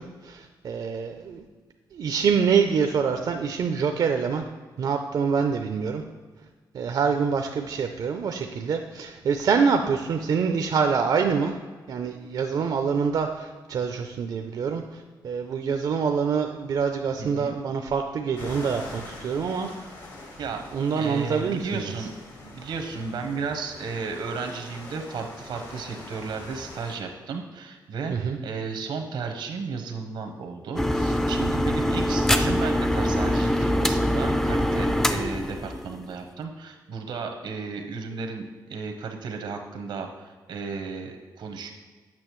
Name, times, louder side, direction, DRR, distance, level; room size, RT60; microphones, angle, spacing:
voice 1, 0.0-1.5 1.9-4.5 4.8-6.0 6.7-11.6 11.9-19.7 20.7-21.9 28.1-28.4, right 6 dB, 60° right, 5 dB, 0.5 m, -25 dB
voice 2, 17.2-17.5 20.4-20.6 21.0-22.1 22.5-28.1 28.4-41.7, right 5 dB, 85° right, 5 dB, 0.9 m, -34 dB
sound 1, 18.4-27.0, left 2 dB, 70° left, 2.0 m, -43 dB
sound 2, 30.8-36.2, equal, 5° left, 0.4 m, -24 dB
8.7 x 6.1 x 3.1 m, 1.4 s
cardioid pair, 100°, 8 cm